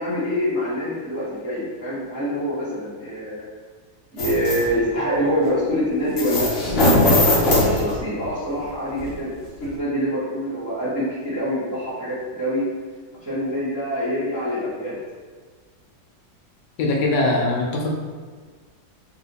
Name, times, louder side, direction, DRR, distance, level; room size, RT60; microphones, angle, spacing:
voice 1, 0.0-3.5 4.1-6.5 7.0-9.3 9.6-12.6 13.2-15.0, equal, 15° right, -11 dB, 0.6 m, -25 dB
sound 1, 4.2-4.6 6.2-8.3 9.0-9.1 9.6-9.7, left 1 dB, 50° left, 0.8 m, -19 dB
voice 2, 16.8-17.9, left 2 dB, 75° left, -1 dB, 1.1 m, -21 dB
3.3 x 2.8 x 2.8 m, 1.5 s
omnidirectional pair, 2.0 m